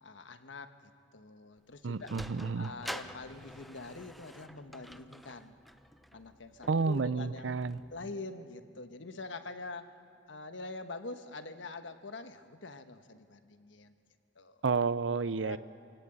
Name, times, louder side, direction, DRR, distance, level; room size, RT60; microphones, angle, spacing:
voice 1, 0.0-2.1 2.6-5.6 6.1-7.5 7.9-9.9 10.3-13.9 14.3-14.6 15.4-15.6, left 3 dB, 85° left, 9 dB, 1.3 m, -45 dB
Sliding door, 1.6-8.1, equal, ahead, 0.6 m, -48 dB
voice 2, 1.8-2.7 6.7-7.8 14.6-15.6, right 4 dB, 90° right, 17 dB, 0.6 m, -30 dB
27.0 x 17.5 x 8.9 m, 2.3 s
head